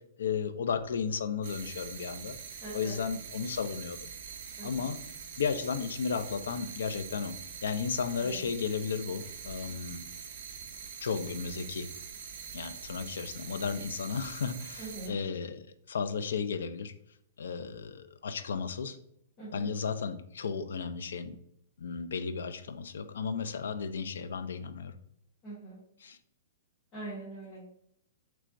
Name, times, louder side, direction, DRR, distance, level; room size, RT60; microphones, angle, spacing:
voice 1, 0.2-2.4 2.7-4.1 4.6-5.0 5.4-10.0 11.0-11.9 12.5-16.9 17.4-19.0 19.5-21.4 21.8-24.9 26.0-26.2, left 6 dB, 85° left, 10 dB, 0.5 m, -34 dB
sound 1, 1.4-15.1, right 7 dB, 45° right, 0.8 m, -44 dB
voice 2, 2.6-3.0 4.6-4.9 8.2-8.5 14.8-15.1 19.4-19.7 25.4-25.8 26.9-27.6, right 2 dB, 25° left, -8 dB, 1.3 m, -43 dB
6.1 x 3.4 x 2.6 m, 0.74 s
hypercardioid pair, 175°, 0 cm